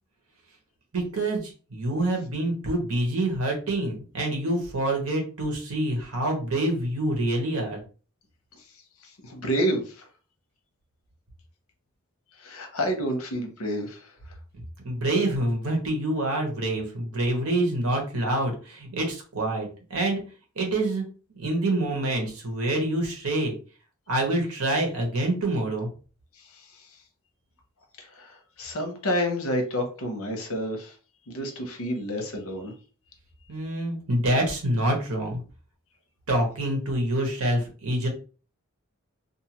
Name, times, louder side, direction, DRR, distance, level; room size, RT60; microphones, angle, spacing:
voice 1, 0.9-7.8 14.5-20.2 20.5-21.0 21.3-23.6 24.1-25.9 33.5-35.4 36.3-38.1, right 1 dB, 85° right, 2 dB, 1.0 m, -26 dB
voice 2, 9.0-10.1 12.4-14.1 26.4-26.9 28.0-30.9 31.3-32.7, equal, 75° left, 4 dB, 0.7 m, -29 dB
2.6 x 2.3 x 2.9 m, 0.36 s
head